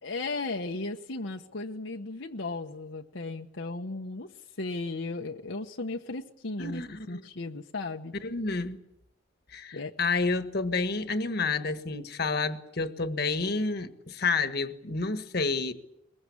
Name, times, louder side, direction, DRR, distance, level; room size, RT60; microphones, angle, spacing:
voice 1, 0.0-4.3 4.6-8.1 9.7-9.9, left 3 dB, 75° left, 1.1 m, -35 dB
voice 2, 6.6-7.2 8.2-8.8 9.5-15.7, left 4 dB, 55° left, 1.5 m, -29 dB
22.5 x 22.0 x 8.5 m
head